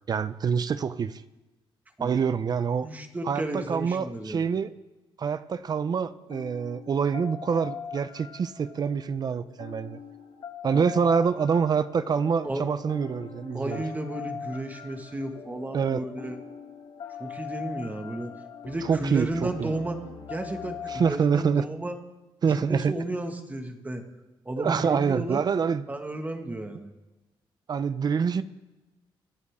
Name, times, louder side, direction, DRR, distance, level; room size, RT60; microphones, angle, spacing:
voice 1, 0.1-1.2 2.0-2.9 3.3-4.7 5.2-10.0 10.6-13.8 15.7-16.0 18.8-19.8 20.9-21.6 22.4-22.9 24.6-25.8 27.7-28.4, right 6 dB, 45° right, 14 dB, 0.7 m, -26 dB
voice 2, 2.8-4.5 10.7-10.8 12.4-12.6 13.5-16.4 17.2-18.3 18.6-20.0 20.3-22.0 22.5-24.0 24.5-25.4 25.9-26.9, right 1 dB, 15° right, 4 dB, 1.9 m, -33 dB
sound 1, 5.5-21.1, left 7 dB, 75° left, 2.1 m, -42 dB
25.5 x 11.0 x 3.7 m, 1.1 s
cardioid pair, 100°, 10 cm